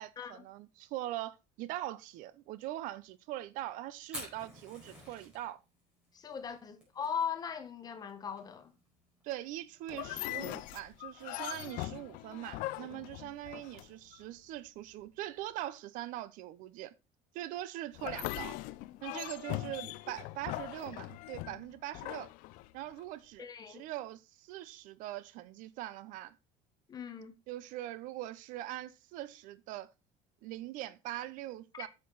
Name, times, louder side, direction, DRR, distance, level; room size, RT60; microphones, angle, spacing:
voice 1, 0.0-5.6 9.2-16.9 17.3-18.6 19.0-22.3 22.7-26.3 27.5-29.9 30.4-31.9, right 14 dB, 65° right, 0.6 m, -42 dB
Fire, 4.0-13.8, equal, 5° right, 4.6 m, -53 dB
voice 2, 6.1-8.7 23.4-23.9 26.9-27.3 31.7-31.9, left 7 dB, 25° left, 1.2 m, -39 dB
sound 1, 9.9-14.2 17.9-23.0, left 17 dB, 65° left, 0.5 m, -41 dB
8.6 x 6.7 x 3.9 m
cardioid pair, 155°, 15 cm